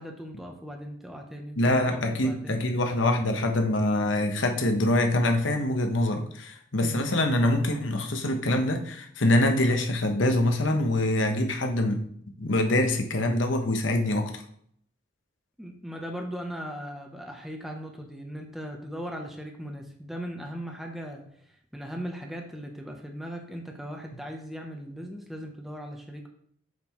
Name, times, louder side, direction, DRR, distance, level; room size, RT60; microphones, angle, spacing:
voice 1, 0.0-2.6 6.8-7.1 15.6-21.3 21.7-26.3, equal, ahead, 1 dB, 0.7 m, -38 dB
voice 2, 1.6-12.1 12.4-14.4, left 1 dB, 70° left, 4 dB, 1.0 m, -24 dB
7.7 x 5.7 x 3.0 m, 0.64 s
head